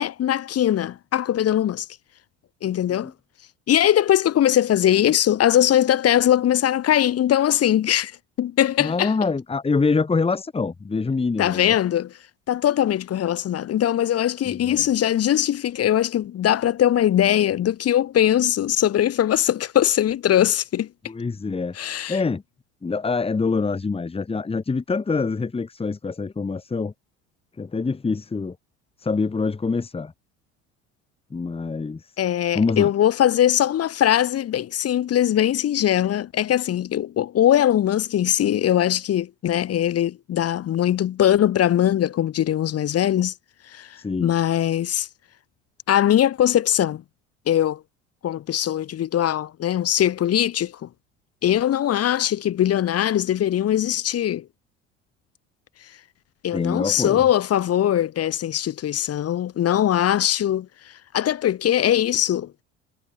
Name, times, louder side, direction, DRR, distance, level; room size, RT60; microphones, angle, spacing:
voice 1, 0.0-1.9 2.6-3.1 3.7-8.1 8.4-9.1 11.4-12.1 12.5-20.9 21.8-22.2 32.2-43.3 43.7-45.1 45.9-47.0 47.5-47.8 48.2-50.9 51.4-54.5 56.4-62.6, left 11 dB, 40° left, 1.7 m, -21 dB
voice 2, 8.8-11.7 14.4-14.8 21.1-21.7 22.1-22.4 22.8-26.9 27.6-28.6 29.0-30.1 31.3-32.1 32.5-32.9 44.0-44.3 56.5-57.2, left 4 dB, 15° left, 1.3 m, -25 dB
hypercardioid pair, 65°, 36 cm